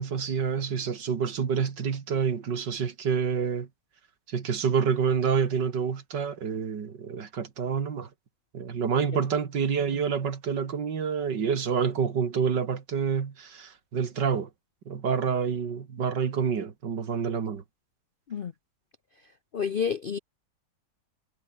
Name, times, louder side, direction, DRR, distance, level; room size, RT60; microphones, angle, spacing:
voice 1, 0.0-3.7 4.3-8.1 8.5-14.5 14.9-17.6, right 6 dB, 85° right, 2.6 m, -28 dB
voice 2, 19.5-20.2, left 7 dB, 65° left, 0.5 m, -29 dB
omnidirectional pair, 1.8 m